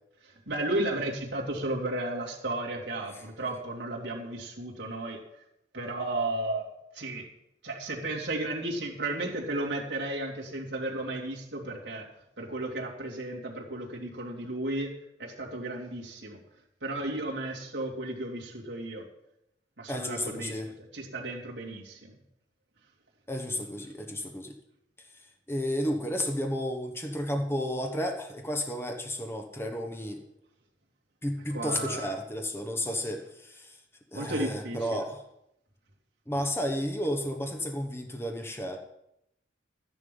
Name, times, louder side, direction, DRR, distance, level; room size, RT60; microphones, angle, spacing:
voice 1, 0.2-5.2 5.7-6.7 6.9-7.3 7.6-12.1 12.4-14.9 15.2-16.4 16.8-19.1 19.8-22.1 31.5-32.1 34.1-35.0, right 2 dB, 65° right, -1 dB, 2.8 m, -34 dB
voice 2, 19.9-20.7 23.3-24.5 25.5-30.2 31.2-33.8 34.1-35.2 36.3-38.8, equal, 15° left, 4 dB, 1.1 m, -32 dB
13.0 x 10.0 x 5.4 m, 0.81 s
head